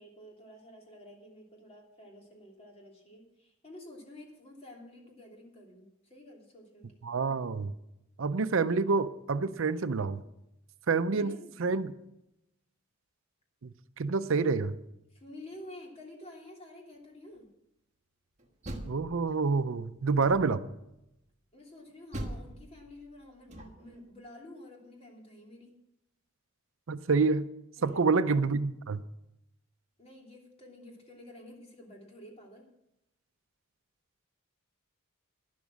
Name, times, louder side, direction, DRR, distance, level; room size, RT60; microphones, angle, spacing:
voice 1, 0.0-6.9 11.1-11.5 15.1-17.5 21.5-25.7 27.8-28.1 30.0-32.7, left 1 dB, 30° left, 0 dB, 3.1 m, -50 dB
voice 2, 7.0-7.7 8.2-10.2 10.9-11.3 11.6-11.9 14.0-14.8 18.9-20.6 26.9-27.5 27.8-29.0, right 4 dB, 65° right, 12 dB, 0.6 m, -27 dB
Door, 18.4-19.6 20.2-20.8 22.1-24.0, right 1 dB, 35° right, 1.5 m, -42 dB
12.5 x 11.0 x 6.2 m, 0.86 s
head